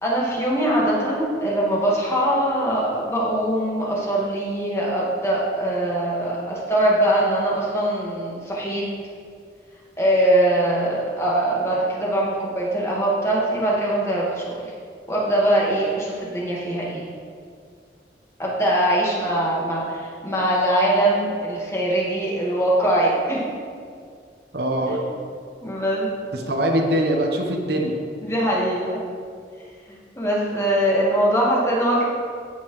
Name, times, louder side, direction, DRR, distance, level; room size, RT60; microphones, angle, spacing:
voice 1, 0.0-8.8 10.0-14.7 15.1-17.1 18.4-23.4 24.9-25.0 25.6-26.1 28.2-29.0 29.9-32.0, right 1 dB, 15° left, -5 dB, 1.5 m, -22 dB
voice 2, 24.5-25.0 26.3-28.0, right 1 dB, 65° right, 1 dB, 0.9 m, -22 dB
14.5 x 5.5 x 3.1 m, 2.2 s
head